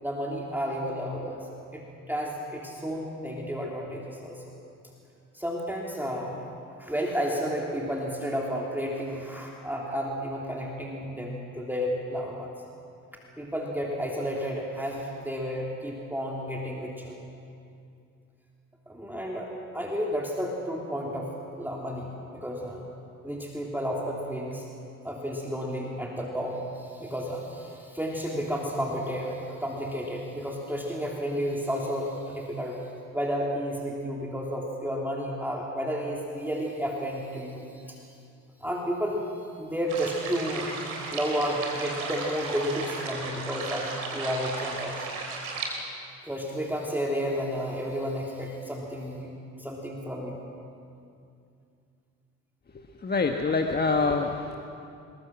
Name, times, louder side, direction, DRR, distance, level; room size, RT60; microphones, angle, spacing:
voice 1, 0.0-1.5 1.7-4.4 5.3-6.4 6.8-12.5 13.4-17.1 18.9-19.5 19.7-22.8 23.2-24.7 25.0-32.8 33.1-38.0 38.6-40.8 41.1-45.0 46.2-50.4, equal, 5° right, -2 dB, 3.2 m, -32 dB
sound 1, 39.9-45.7, right 4 dB, 75° right, 3.5 m, -35 dB
voice 2, 53.0-54.6, left 4 dB, 25° left, 4 dB, 1.4 m, -25 dB
22.0 x 21.5 x 6.1 m, 2.5 s
figure-of-eight pair, 50°, 42 cm